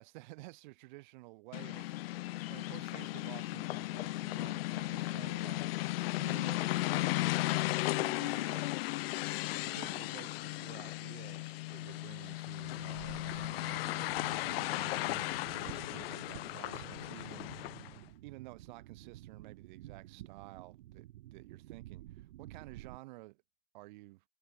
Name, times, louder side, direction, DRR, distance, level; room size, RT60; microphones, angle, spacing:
voice 1, 0.0-7.2 7.8-8.7 9.6-17.5 17.8-17.9 18.2-23.4 23.7-24.2, right 22 dB, 45° right, 5.0 m, -53 dB
sound 1, 1.5-18.0, left 18 dB, 65° left, 0.5 m, -36 dB
sound 2, 12.6-23.0, right 15 dB, 70° right, 2.2 m, -51 dB
supercardioid pair, 175°, 31 cm